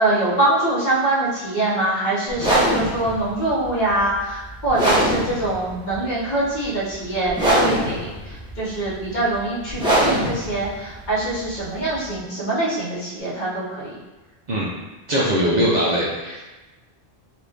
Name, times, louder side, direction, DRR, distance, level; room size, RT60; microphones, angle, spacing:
voice 1, 0.0-13.9, right 2 dB, 50° left, -7 dB, 0.9 m, -24 dB
sound 1, 2.3-12.2, right 1 dB, 5° right, 0.7 m, -23 dB
voice 2, 15.1-16.5, equal, 50° right, -6 dB, 0.6 m, -21 dB
2.9 x 2.5 x 3.4 m, 1.1 s
omnidirectional pair, 1.1 m